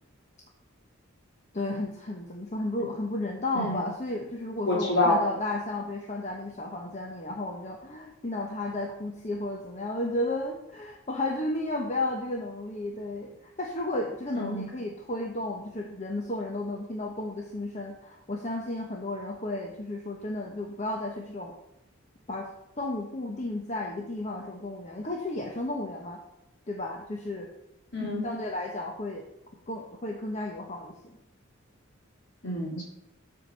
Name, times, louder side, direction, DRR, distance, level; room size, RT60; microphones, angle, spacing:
voice 1, 1.5-21.5 22.3-22.5 22.8-26.2 26.7-27.5 28.2-29.3 29.7-31.2, left 2 dB, 35° left, 0 dB, 1.0 m, -33 dB
voice 2, 4.7-5.2 14.3-14.6 27.9-28.3 32.4-32.8, left 2 dB, 60° left, -3 dB, 3.5 m, -26 dB
13.0 x 4.7 x 5.5 m, 0.88 s
head